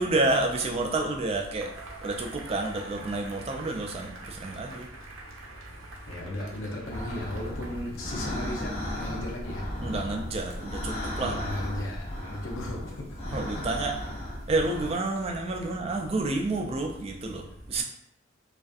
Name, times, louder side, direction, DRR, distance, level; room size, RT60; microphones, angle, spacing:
voice 1, 0.0-1.7 2.0-4.9 9.8-11.4 13.3-14.0 14.5-17.8, right 2 dB, 30° right, 2 dB, 0.3 m, -29 dB
Cheering / Applause / Crowd, 1.6-8.8, right 2 dB, 90° right, 0.6 m, -47 dB
voice 2, 6.1-9.6 11.2-12.9, left 1 dB, 75° left, -1 dB, 0.6 m, -35 dB
sound 1, 6.9-14.9, left 1 dB, 30° left, 0.5 m, -35 dB
2.5 x 2.4 x 2.4 m, 0.76 s
head